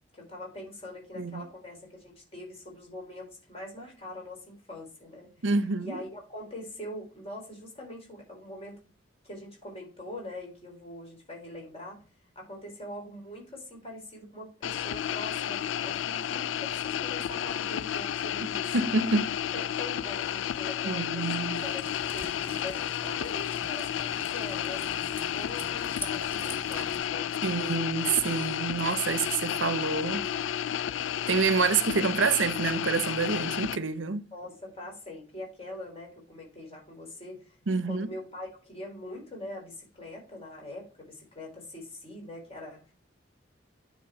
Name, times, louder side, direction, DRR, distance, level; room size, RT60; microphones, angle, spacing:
voice 1, 0.1-5.4 5.8-8.8 9.2-12.1 12.4-18.8 19.5-21.3 21.6-25.0 25.3-27.3 34.3-37.6 37.9-42.9, left 1 dB, 30° left, 3.9 m, -43 dB
voice 2, 5.4-6.0 18.7-19.3 20.8-21.7 27.4-30.3 31.3-34.2 37.7-38.1, right 4 dB, 75° right, 0.7 m, -27 dB
sound 1, 14.6-33.8, left 10 dB, 75° left, 0.3 m, -32 dB
sound 2, 21.5-27.0, left 1 dB, 10° left, 1.4 m, -44 dB
9.6 x 4.4 x 4.4 m
head